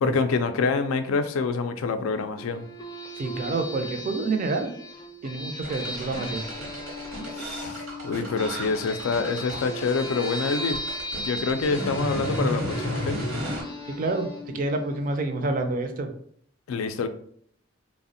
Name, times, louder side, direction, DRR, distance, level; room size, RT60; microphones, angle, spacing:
voice 1, 0.0-2.6 7.3-10.8 11.3-13.2 16.7-17.1, left 4 dB, 85° left, 9 dB, 0.3 m, -26 dB
sound 1, 2.4-15.6, left 1 dB, 20° left, 0.4 m, -37 dB
voice 2, 3.2-4.7 5.2-6.4 13.9-16.1, right 3 dB, 40° right, 6 dB, 0.3 m, -28 dB
sound 2, 5.6-13.6, equal, 80° right, 0.8 m, -33 dB
3.3 x 2.0 x 2.6 m, 0.62 s
head